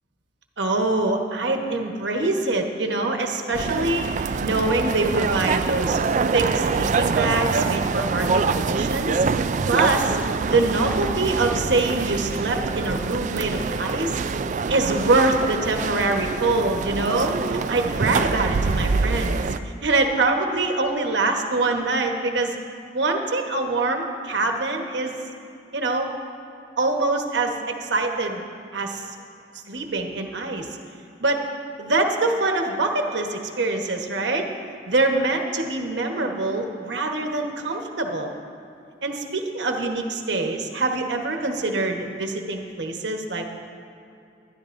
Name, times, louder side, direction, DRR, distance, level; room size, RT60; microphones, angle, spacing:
voice 1, 0.6-6.0 6.3-9.2 9.6-10.2 10.5-14.2 14.7-19.4 19.8-22.6 22.9-25.1 25.7-26.1 26.8-28.4 28.7-29.0 29.7-30.7 31.2-31.4 31.8-34.4 34.9-38.3 39.0-43.5, right 2 dB, 80° right, 3 dB, 1.2 m, -24 dB
sound 1, 3.5-19.6, right 4 dB, 45° right, 0.3 m, -25 dB
20.5 x 12.0 x 2.6 m, 2.7 s
head